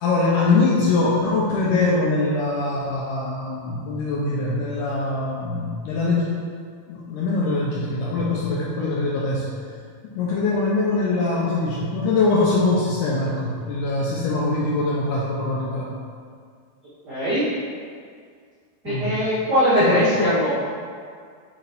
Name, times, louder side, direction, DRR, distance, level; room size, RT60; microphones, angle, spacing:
voice 1, 0.0-6.2 6.9-9.5 10.1-15.9 18.9-19.2 19.8-20.4, left 3 dB, 80° left, -5 dB, 2.0 m, -23 dB
voice 2, 17.0-17.5 18.8-20.5, equal, 75° right, -13 dB, 0.9 m, -20 dB
8.5 x 3.8 x 3.4 m, 2.1 s
omnidirectional pair, 4.4 m